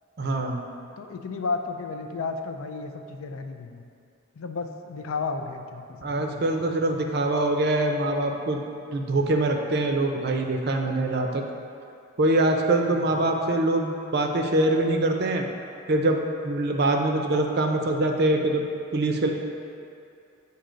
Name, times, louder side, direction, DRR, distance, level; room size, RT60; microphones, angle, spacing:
voice 1, 0.2-0.6 6.0-8.6 8.9-11.4 12.2-15.4 15.9-18.6 18.9-19.3, right 2 dB, 50° right, 3 dB, 0.5 m, -24 dB
voice 2, 1.0-3.8 4.4-6.4 12.8-13.2, left 4 dB, 85° left, 6 dB, 0.4 m, -33 dB
7.4 x 2.8 x 5.0 m, 2.5 s
head